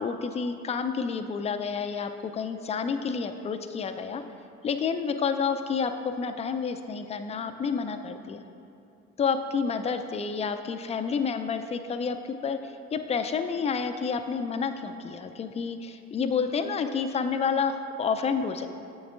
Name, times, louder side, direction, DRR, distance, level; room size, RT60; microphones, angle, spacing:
voice 1, 0.0-4.2 4.6-8.4 9.2-12.2 12.4-18.7, left 5 dB, 20° left, 8 dB, 0.4 m, -29 dB
9.8 x 7.7 x 2.5 m, 2.6 s
figure-of-eight pair, 60°, 38 cm